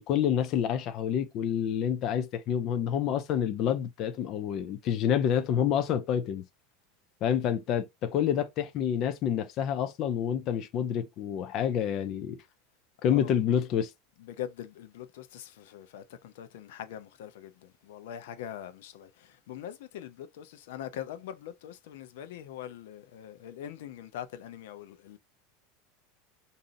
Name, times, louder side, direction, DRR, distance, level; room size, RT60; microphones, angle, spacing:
voice 1, 0.0-6.4 7.2-12.4 13.0-13.9, left 9 dB, 40° left, 0.5 m, -28 dB
voice 2, 14.2-25.2, left 10 dB, 75° left, 0.7 m, -42 dB
5.0 x 2.7 x 2.6 m
supercardioid pair, 165°, 0 cm